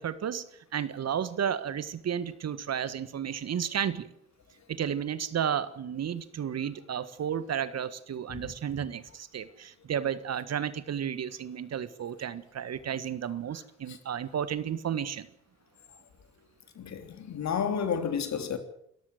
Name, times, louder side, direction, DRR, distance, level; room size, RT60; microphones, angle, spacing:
voice 1, 0.0-4.1 4.7-15.3, right 8 dB, 50° right, 1.5 m, -32 dB
voice 2, 16.7-18.6, left 7 dB, 55° left, 3.2 m, -31 dB
25.5 x 14.0 x 7.9 m
hypercardioid pair, 45°, 33 cm